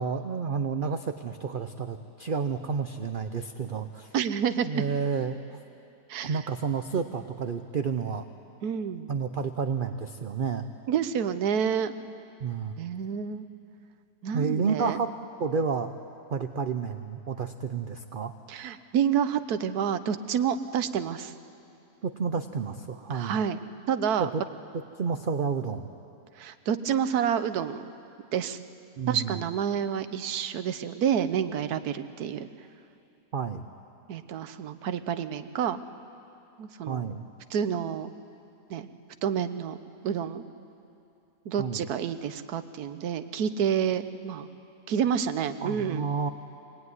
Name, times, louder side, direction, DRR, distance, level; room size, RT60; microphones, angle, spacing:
voice 1, 0.0-4.1 4.6-5.6 6.2-8.3 9.1-10.7 12.4-12.8 14.3-15.1 15.4-15.9 16.3-18.3 22.0-23.4 24.2-24.4 25.0-25.9 29.0-29.4 33.3-33.7 36.9-37.3 41.6-41.8 45.6-46.3, right 5 dB, 55° right, 8 dB, 0.6 m, -30 dB
voice 2, 4.1-4.7 6.1-6.4 8.6-9.1 10.9-12.0 12.8-13.4 14.2-15.0 18.5-21.3 23.1-23.6 23.9-24.3 26.4-27.8 28.3-28.6 29.1-32.5 34.1-35.8 36.6-37.0 37.5-38.1 38.7-38.9 39.2-39.8 40.0-40.4 41.4-44.5 44.9-46.1, right 8 dB, 70° right, 10 dB, 1.3 m, -28 dB
24.0 x 19.0 x 9.6 m, 2.7 s
omnidirectional pair, 1.8 m